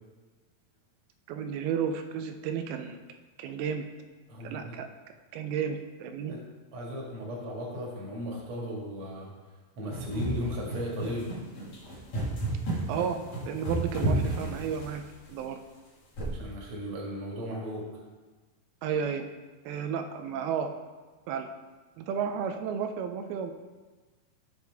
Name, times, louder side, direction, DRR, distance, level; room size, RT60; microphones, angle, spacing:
voice 1, 1.3-3.0 3.4-3.8 4.4-4.9 5.3-6.4 12.9-15.0 15.3-15.6 18.8-19.2 19.7-20.7 21.3-21.5 22.0-23.5, right 7 dB, 90° right, 6 dB, 2.5 m, -32 dB
voice 2, 4.3-4.8 6.3-6.4 6.7-9.3 9.8-11.3 16.2-17.8, equal, 45° right, -3 dB, 2.3 m, -36 dB
sound 1, 9.9-15.2 16.2-16.5, right 1 dB, 50° left, 2.5 m, -32 dB
14.5 x 5.0 x 3.4 m, 1.3 s
omnidirectional pair, 4.3 m